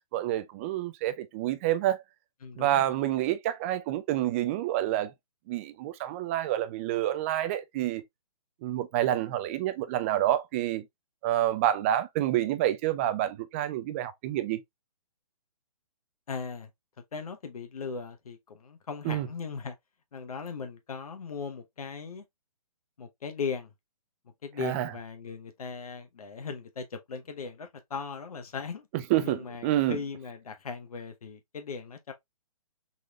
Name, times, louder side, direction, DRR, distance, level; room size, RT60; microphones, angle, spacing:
voice 1, 0.1-2.0 2.6-5.1 5.5-8.0 8.6-10.8 11.2-14.6 19.0-19.3 24.6-24.9 28.9-30.0, right 13 dB, 20° right, 0.3 m, -28 dB
voice 2, 2.4-2.9 16.3-16.7 17.1-19.8 20.1-22.2 23.0-23.7 24.4-28.9 29.2-32.1, left 5 dB, 70° left, 1.0 m, -38 dB
4.0 x 3.1 x 2.3 m
figure-of-eight pair, 135°, 19 cm